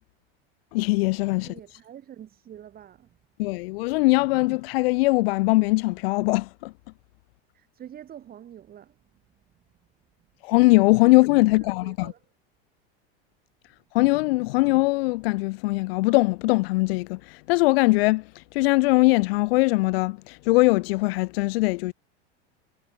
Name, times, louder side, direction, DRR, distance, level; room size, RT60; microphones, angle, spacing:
voice 1, 0.7-1.5 3.4-6.7 10.4-12.1 13.9-21.9, left 23 dB, 65° left, 0.6 m, -21 dB
voice 2, 1.4-3.2 7.5-9.0 11.5-12.2, right 10 dB, 30° right, 1.8 m, -46 dB
supercardioid pair, 120°, 32 cm